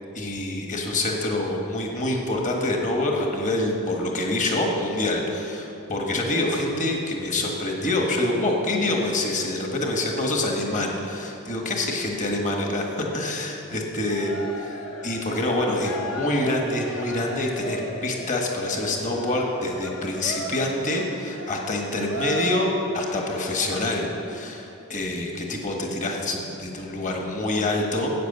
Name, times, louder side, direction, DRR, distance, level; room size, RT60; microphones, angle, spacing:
voice 1, 0.1-14.3 14.6-28.1, left 2 dB, 35° left, 1 dB, 1.6 m, -26 dB
Cheering, 14.1-24.1, equal, 65° left, 1.5 m, -36 dB
13.0 x 8.6 x 6.9 m, 2.8 s
head